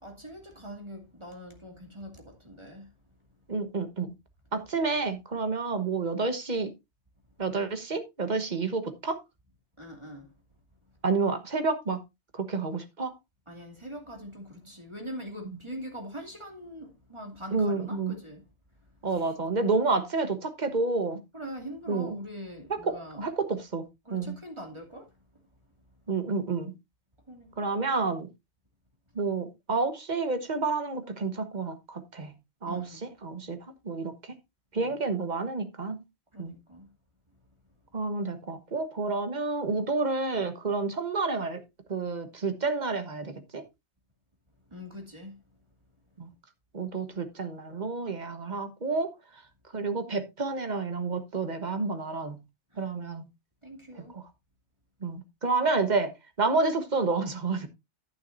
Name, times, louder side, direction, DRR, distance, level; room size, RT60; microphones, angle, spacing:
voice 1, 0.0-2.9 9.8-10.3 13.5-18.4 19.1-19.3 21.3-23.3 24.0-25.1 27.3-27.7 32.6-33.0 34.8-35.0 36.3-36.9 44.7-45.4 52.7-52.9 53.6-54.2, equal, 25° right, 2.6 m, -43 dB
voice 2, 3.5-4.1 4.5-6.7 7.4-9.2 11.0-12.0 12.3-13.1 17.5-18.2 19.0-21.2 21.9-22.2 22.7-23.8 24.1-24.3 26.1-26.7 27.6-28.3 29.1-32.3 32.6-33.6 33.8-34.3 34.7-36.0 36.4-36.5 37.9-41.6 41.9-43.6 46.2-46.3 46.7-49.1 49.7-52.4 52.8-53.2 54.1-54.2 55.0-57.7, right 4 dB, 40° right, 1.4 m, -29 dB
11.0 x 9.3 x 2.6 m
omnidirectional pair, 1.1 m